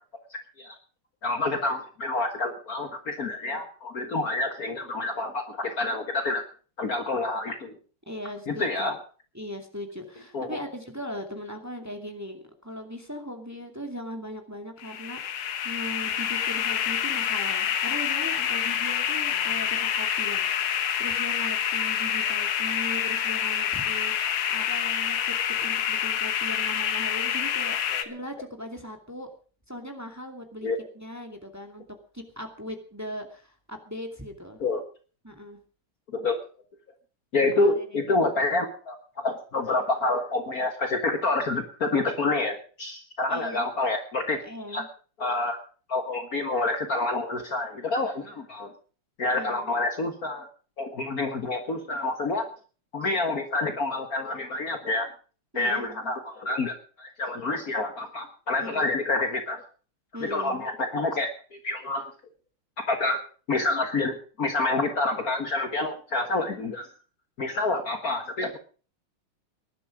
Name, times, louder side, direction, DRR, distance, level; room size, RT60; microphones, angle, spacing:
voice 1, 0.3-0.8 1.2-6.4 6.8-7.8 8.5-9.0 10.3-10.6 27.9-28.1 30.6-30.8 34.6-34.8 36.1-36.4 37.3-39.0 39.2-44.4 44.7-44.8 45.2-45.6 45.9-48.7 49.2-50.5 50.8-52.5 52.9-55.1 55.6-59.6 60.2-62.1 62.8-63.2 63.5-66.9 67.4-68.6, left 2 dB, 45° left, 6 dB, 1.8 m, -28 dB
voice 2, 8.1-8.9 9.3-29.3 29.7-30.7 30.9-31.9 32.1-34.6 35.2-35.6 37.5-38.0 43.3-43.6 44.4-44.9 49.3-49.7 55.5-56.1 58.6-59.0 60.1-60.7, equal, 10° right, 4 dB, 2.3 m, -39 dB
sound 1, 14.8-28.1, left 9 dB, 85° left, 2.0 m, -27 dB
19.0 x 11.5 x 5.0 m, 0.39 s
omnidirectional pair, 2.3 m